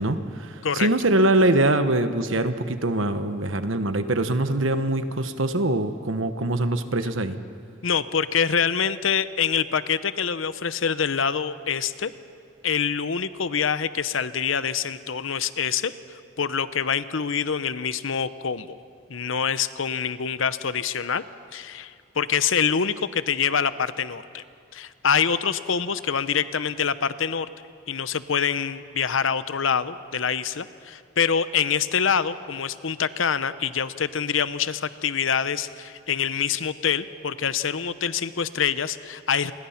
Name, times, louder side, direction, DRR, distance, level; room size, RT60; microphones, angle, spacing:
voice 1, 0.0-7.4, right 2 dB, 80° right, 10 dB, 1.3 m, -23 dB
voice 2, 7.8-12.1 12.6-15.9 16.4-18.8 19.1-21.2 21.5-24.4 24.7-27.5 27.9-39.5, left 7 dB, 80° left, 14 dB, 0.8 m, -25 dB
29.0 x 21.5 x 5.8 m, 2.3 s
head